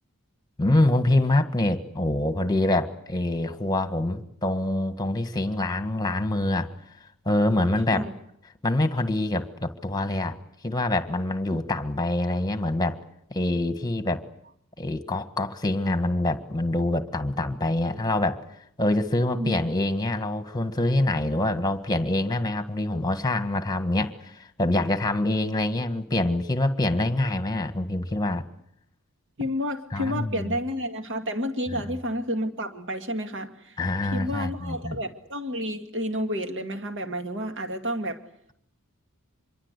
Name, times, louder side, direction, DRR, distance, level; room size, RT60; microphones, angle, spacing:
voice 1, 0.6-6.7 7.2-8.1 8.6-10.4 10.6-13.0 13.3-14.2 14.8-18.4 18.8-28.4 29.9-30.6 31.7-31.8 33.8-35.0, left 1 dB, 15° left, 9 dB, 1.6 m, -25 dB
voice 2, 29.4-33.8 34.1-38.2, equal, 55° right, 6 dB, 2.2 m, -30 dB
26.0 x 23.0 x 8.3 m, 0.74 s
head